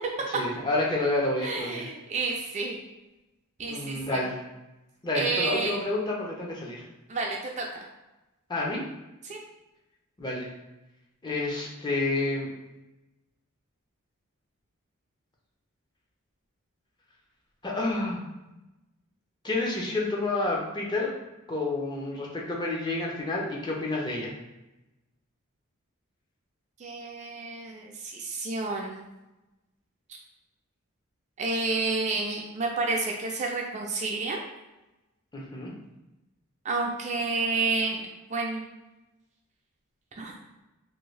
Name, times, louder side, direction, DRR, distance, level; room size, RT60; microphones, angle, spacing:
voice 1, 0.3-1.9 3.6-4.4 5.0-6.8 8.5-8.8 10.2-10.5 11.2-12.5 17.6-18.2 19.4-21.1 21.5-24.3 35.3-35.7, left 2 dB, 20° left, -2 dB, 0.6 m, -29 dB
voice 2, 1.4-2.8 3.6-4.2 5.1-5.8 7.1-7.8 9.3-9.4 26.8-29.1 31.4-34.4 36.6-38.6 40.2-40.3, right 3 dB, 35° right, 0 dB, 0.4 m, -30 dB
2.7 x 2.6 x 3.1 m, 1.0 s
head